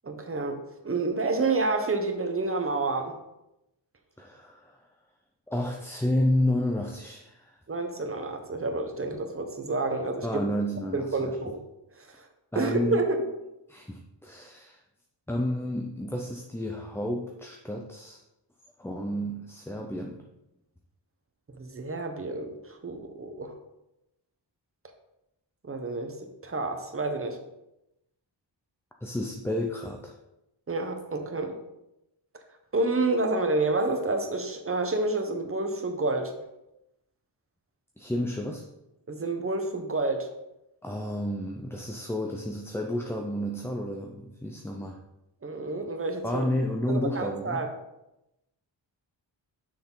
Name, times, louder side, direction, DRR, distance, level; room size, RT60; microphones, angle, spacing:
voice 1, 0.0-3.2 7.7-10.4 10.9-11.6 12.0-12.1 12.5-13.2 21.6-23.6 25.6-26.1 26.4-27.4 30.7-31.6 32.7-36.3 39.1-40.3 45.4-46.5 46.9-47.7, right 3 dB, 30° right, 5 dB, 0.9 m, -29 dB
voice 2, 4.2-4.8 5.5-7.6 10.2-11.4 12.5-13.0 13.7-14.8 15.3-18.2 18.8-20.2 29.0-30.2 38.0-38.6 40.8-45.0 46.2-47.7, left 1 dB, 5° left, 1 dB, 0.5 m, -31 dB
6.7 x 5.8 x 3.9 m, 0.90 s
wide cardioid pair, 115°, 45 cm